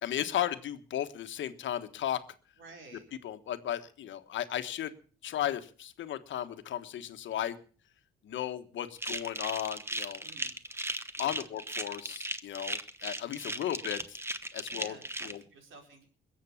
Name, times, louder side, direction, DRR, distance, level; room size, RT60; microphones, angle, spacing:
voice 1, 0.0-2.2 3.2-4.9 5.2-7.6 8.2-10.2 11.2-14.2 14.5-15.0 15.2-15.4, left 11 dB, 70° left, 10 dB, 1.3 m, -35 dB
voice 2, 2.6-3.1 10.2-10.6 11.2-11.5 14.7-16.1, right 3 dB, 75° right, 4 dB, 4.5 m, -52 dB
sound 1, 9.0-15.3, right 1 dB, 10° right, 1.1 m, -37 dB
21.5 x 7.6 x 7.1 m, 0.42 s
cardioid pair, 90°, 20 cm